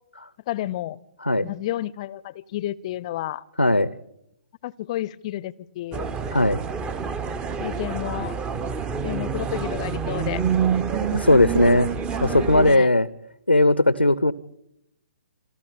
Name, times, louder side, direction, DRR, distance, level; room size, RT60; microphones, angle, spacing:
voice 1, 0.5-1.0 1.4-3.4 4.6-6.0 7.6-8.4 9.0-10.4 12.3-12.9, left 14 dB, 35° left, 23 dB, 0.7 m, -31 dB
voice 2, 3.6-3.9 6.3-6.6 11.1-11.9 12.2-13.1 13.5-14.3, left 2 dB, 90° left, 17 dB, 0.8 m, -18 dB
sound 1, 5.9-12.8, right 6 dB, 15° right, 0.9 m, -27 dB
27.5 x 13.5 x 8.9 m, 0.81 s
figure-of-eight pair, 125°, 6 cm